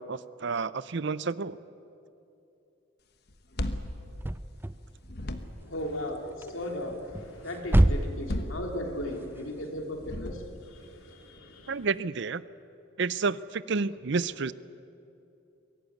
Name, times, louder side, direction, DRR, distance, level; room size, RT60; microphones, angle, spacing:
voice 1, 0.0-1.6 11.7-12.4 13.0-14.5, right 4 dB, 60° right, 18 dB, 0.6 m, -30 dB
sound 1, 3.3-4.8 5.0-5.8 8.0-9.2 10.0-10.8, left 1 dB, 50° left, 1.3 m, -36 dB
sound 2, 3.9-12.0, right 1 dB, 10° right, 0.4 m, -30 dB
voice 2, 5.6-11.9, left 1 dB, 80° left, 3 dB, 3.1 m, -37 dB
23.0 x 17.0 x 9.4 m, 2.8 s
head